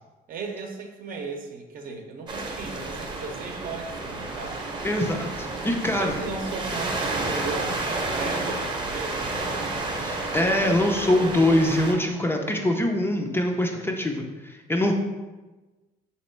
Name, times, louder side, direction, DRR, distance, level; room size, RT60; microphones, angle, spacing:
voice 1, 0.3-4.6 6.0-9.7, right 4 dB, 55° right, 3 dB, 0.7 m, -36 dB
sound 1, 2.3-11.9, right 2 dB, 25° right, 0.8 m, -31 dB
voice 2, 4.8-6.2 10.0-14.9, left 1 dB, 15° left, 2 dB, 0.4 m, -24 dB
3.6 x 3.0 x 4.4 m, 1.2 s
cardioid pair, 110°, 17 cm